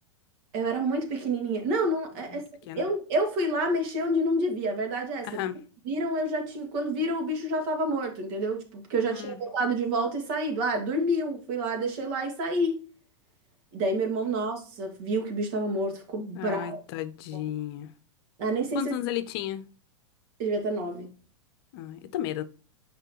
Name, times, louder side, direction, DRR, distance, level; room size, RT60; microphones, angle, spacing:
voice 1, 0.5-2.4 2.8-5.3 5.9-12.8 13.7-16.8 18.4-18.9 20.4-21.2, right 1 dB, 50° right, 2.1 m, -28 dB
voice 2, 9.1-9.4 16.3-17.9 18.7-19.6 21.7-22.4, left 11 dB, 55° left, 0.7 m, -33 dB
6.7 x 5.0 x 3.0 m
hypercardioid pair, 100°, 16 cm